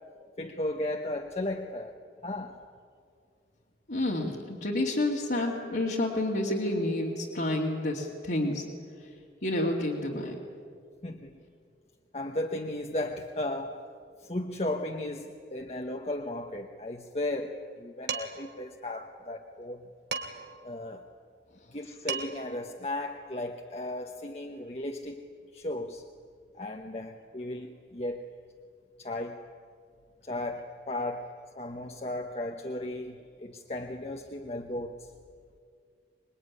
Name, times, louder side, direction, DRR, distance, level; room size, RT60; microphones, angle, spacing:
voice 1, 0.4-2.6 11.0-11.4 12.1-13.9 14.2-19.9 20.6-21.0 21.7-25.2 25.5-26.0 26.5-28.2 29.0-29.5 30.2-35.1, left 1 dB, 35° left, 4 dB, 1.1 m, -35 dB
voice 2, 3.9-8.6 9.4-10.4, left 1 dB, 65° left, -4 dB, 2.6 m, -29 dB
Dishes pots and pans, 18.1-18.5 20.1-20.6 21.7-21.8 22.1-22.5, right 5 dB, 75° right, 2.9 m, -35 dB
26.0 x 21.5 x 9.7 m, 2.3 s
head